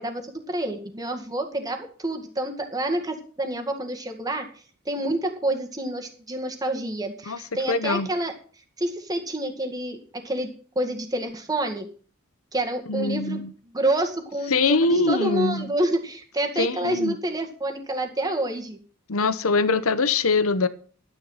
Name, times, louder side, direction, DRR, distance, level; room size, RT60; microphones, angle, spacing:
voice 1, 0.0-4.5 4.9-8.3 8.8-10.5 10.8-11.9 12.5-13.4 13.7-18.8, right 1 dB, 15° right, 2.0 m, -28 dB
voice 2, 7.7-8.1 12.9-13.5 14.5-15.7 16.6-17.2 19.1-20.7, left 3 dB, 80° left, 0.9 m, -23 dB
12.0 x 10.0 x 5.7 m
head